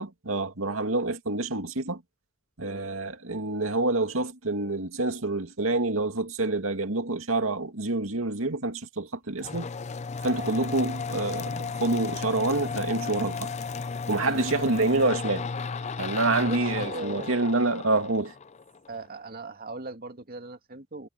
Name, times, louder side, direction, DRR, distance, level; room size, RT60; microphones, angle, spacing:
voice 1, 0.0-2.0 2.6-9.7 10.2-13.5 14.1-15.5 16.0-18.3, right 2 dB, 80° right, 2.3 m, -27 dB
voice 2, 2.6-2.9 10.4-10.6 14.2-14.5 16.0-16.1 16.4-17.3 18.9-21.1, right 2 dB, 45° right, 2.3 m, -39 dB
sound 1, 9.4-19.0, left 4 dB, 35° left, 0.5 m, -34 dB
head